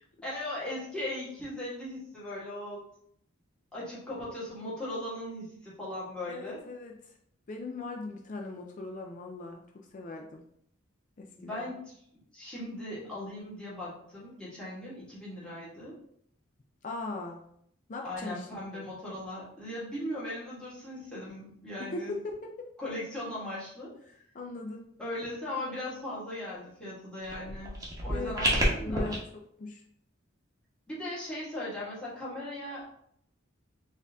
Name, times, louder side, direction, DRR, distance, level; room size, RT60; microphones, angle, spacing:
voice 1, 0.2-2.8 3.7-6.6 11.4-11.9 12.3-15.9 18.0-22.1 22.8-23.9 25.0-27.8 28.0-29.1 30.9-32.9, left 1 dB, 5° left, -9 dB, 1.6 m, -38 dB
voice 2, 6.3-7.0 7.5-9.6 9.9-10.4 11.2-11.7 16.8-17.4 17.9-18.5 18.7-18.8 21.8-22.7 24.3-24.9 28.1-28.4 28.8-29.2 29.6-29.8, left 3 dB, 40° left, 2 dB, 0.4 m, -39 dB
sound 1, 27.2-29.2, equal, 20° right, 1.0 m, -30 dB
4.3 x 2.7 x 3.5 m, 0.69 s
head